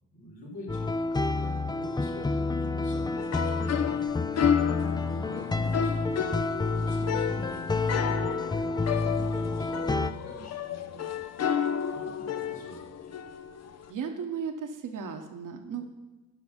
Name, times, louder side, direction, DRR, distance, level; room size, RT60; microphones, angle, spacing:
voice 1, 0.1-11.3 11.9-12.9, equal, 85° left, -4 dB, 2.9 m, -47 dB
sound 1, 0.7-10.1, left 3 dB, 10° left, 0.5 m, -29 dB
sound 2, 3.2-13.9, left 8 dB, 45° left, 0.7 m, -31 dB
voice 2, 13.9-15.9, right 6 dB, 60° right, 5 dB, 1.3 m, -35 dB
11.0 x 6.0 x 5.3 m, 1.1 s
supercardioid pair, 55°, 36 cm